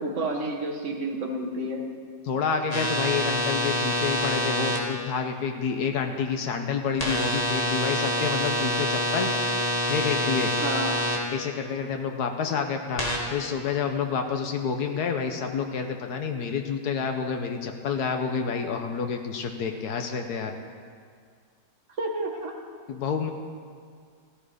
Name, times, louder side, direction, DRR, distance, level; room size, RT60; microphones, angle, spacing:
voice 1, 0.0-1.9 10.6-11.0 22.0-22.6, right 1 dB, 50° right, 0 dB, 2.0 m, -30 dB
voice 2, 2.2-9.3 9.9-10.5 11.3-13.0 13.3-20.5 22.9-23.3, left 6 dB, 90° left, 5 dB, 1.5 m, -28 dB
sound 1, 2.7-4.8 7.0-11.2 13.0-13.2, equal, 25° left, 2.1 m, -26 dB
15.0 x 15.0 x 5.1 m, 2.1 s
omnidirectional pair, 1.6 m